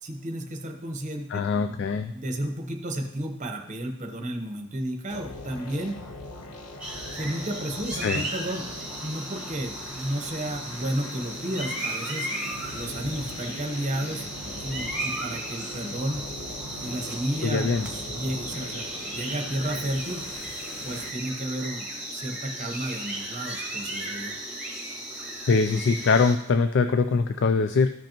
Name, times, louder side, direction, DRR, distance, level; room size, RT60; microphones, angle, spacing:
voice 1, 0.0-1.4 2.1-6.0 7.1-8.7 9.0-12.3 12.7-14.3 14.6-16.2 16.8-20.2 20.8-24.4, right 1 dB, 35° right, 4 dB, 0.9 m, -32 dB
voice 2, 1.3-2.1 8.0-8.2 17.4-17.9 25.5-27.9, left 4 dB, 50° left, 9 dB, 0.3 m, -22 dB
sound 1, 5.1-21.1, left 2 dB, 80° left, 0.9 m, -41 dB
sound 2, 6.8-26.4, right 1 dB, 5° right, 1.3 m, -36 dB
13.5 x 5.3 x 2.9 m, 0.77 s
head